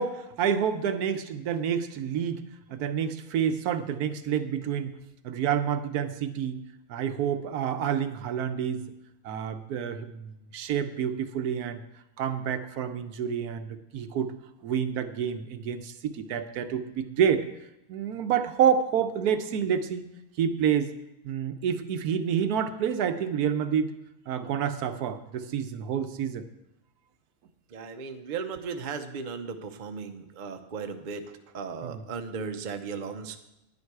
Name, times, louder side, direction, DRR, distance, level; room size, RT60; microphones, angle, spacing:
voice 1, 0.0-2.4 2.7-4.9 5.2-6.6 6.9-8.8 9.2-11.8 12.2-14.3 14.6-17.5 17.9-20.0 20.4-20.9 21.2-23.9 24.3-26.4 31.8-32.0, right 8 dB, 80° right, 9 dB, 1.2 m, -28 dB
voice 2, 27.7-31.2 31.5-33.4, right 5 dB, 45° right, 6 dB, 0.7 m, -36 dB
10.5 x 9.7 x 4.7 m, 0.87 s
omnidirectional pair, 1.6 m